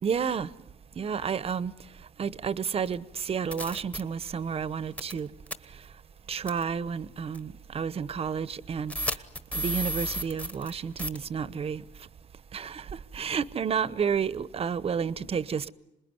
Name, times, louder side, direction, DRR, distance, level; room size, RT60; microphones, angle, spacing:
voice 1, 0.0-0.5 1.0-5.3 5.6-5.9 6.3-9.2 9.5-12.1 12.5-15.7, right 7 dB, 35° right, 0.9 m, -31 dB
sound 1, 2.9-3.0 3.5-4.0 5.0-5.2 5.5-5.6 6.5-6.6 7.3-7.4 8.9-10.7 11.0-11.2, equal, 5° left, 1.3 m, -32 dB
27.0 x 20.5 x 9.6 m
cardioid pair, 110°, 17 cm